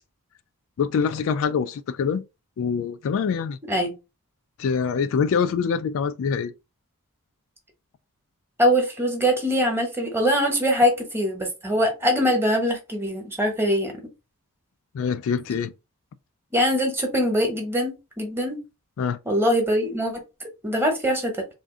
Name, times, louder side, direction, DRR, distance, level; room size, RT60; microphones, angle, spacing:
voice 1, 0.8-2.2 2.6-3.6 4.6-6.5 14.9-15.7 19.0-19.2, left 6 dB, 60° left, 0.3 m, -24 dB
voice 2, 8.6-13.9 16.5-18.6 19.3-20.1 20.6-21.3, equal, 10° right, 1.0 m, -22 dB
3.6 x 2.5 x 3.6 m
head